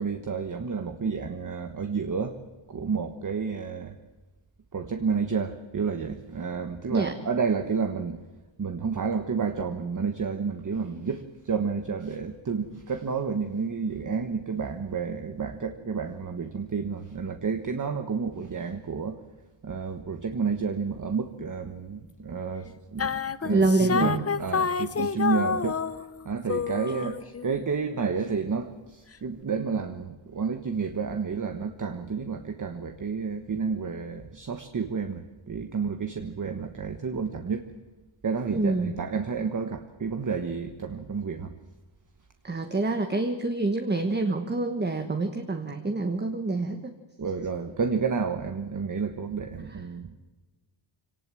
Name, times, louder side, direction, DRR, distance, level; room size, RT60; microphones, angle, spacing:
voice 1, 0.0-2.4 2.7-4.0 4.7-8.2 8.6-19.2 19.6-25.8 26.2-35.2 35.5-37.6 38.2-41.5 47.2-50.2, right 5 dB, 40° right, 7 dB, 1.3 m, -30 dB
sound 1, 23.0-26.2 26.5-27.6, left 6 dB, 30° left, 0.7 m, -28 dB
voice 2, 23.5-24.3 25.0-25.1 38.5-38.9 42.4-46.9, right 2 dB, 20° right, 6 dB, 1.3 m, -26 dB
25.5 x 18.5 x 7.6 m, 1.2 s
wide cardioid pair, 175°, 50 cm